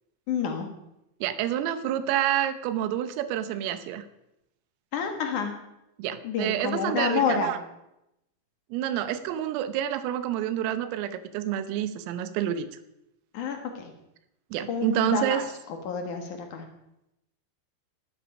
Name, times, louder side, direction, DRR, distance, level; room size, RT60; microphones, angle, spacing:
voice 1, 0.3-0.7 4.9-5.5 6.2-7.5 13.3-13.9 14.7-15.4 15.9-16.6, left 6 dB, 60° left, 4 dB, 2.2 m, -29 dB
voice 2, 1.2-4.1 6.0-7.6 8.7-12.7 14.5-15.5, right 11 dB, 90° right, 12 dB, 3.7 m, -28 dB
17.0 x 12.0 x 5.4 m, 0.86 s
omnidirectional pair, 5.8 m